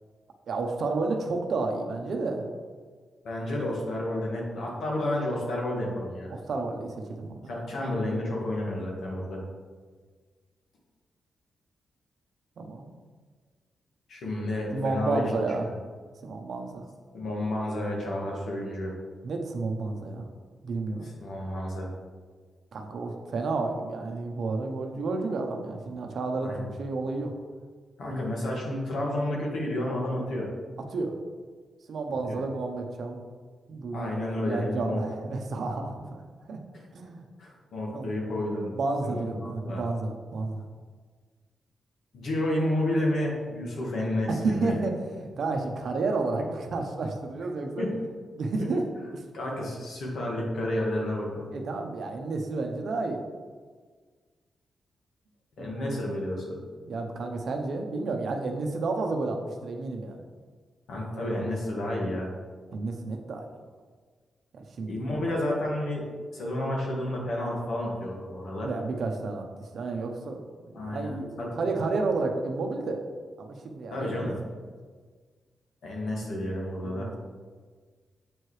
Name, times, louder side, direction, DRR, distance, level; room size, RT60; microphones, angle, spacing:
voice 1, 0.5-2.5 6.3-7.4 12.6-12.9 14.7-15.7 16.2-16.8 19.2-20.2 20.6-21.1 22.7-27.3 30.9-31.1 31.9-33.2 33.7-34.1 34.4-36.2 36.5-36.6 36.9-37.2 37.9-38.1 38.7-40.6 44.3-47.9 48.3-48.8 51.5-53.2 55.6-56.0 56.9-60.2 62.7-63.5 64.5-65.0 68.6-69.5 69.7-73.0 73.4-74.3 76.8-77.2, right 3 dB, 60° right, 3 dB, 0.7 m, -31 dB
voice 2, 3.2-6.3 7.5-9.4 14.1-15.2 15.6-15.7 17.1-19.0 21.0-21.9 26.4-26.7 28.0-30.5 32.3-32.4 33.9-35.0 36.7-36.8 37.4-38.7 39.0-39.8 42.1-44.7 47.8-47.9 48.6-48.7 49.3-51.6 55.6-56.6 60.9-62.3 64.9-66.1 66.3-68.7 70.7-71.5 73.9-74.3 75.8-77.1, left 1 dB, 65° left, -2 dB, 1.7 m, -31 dB
7.8 x 4.7 x 3.2 m, 1.5 s
wide cardioid pair, 145°, 0 cm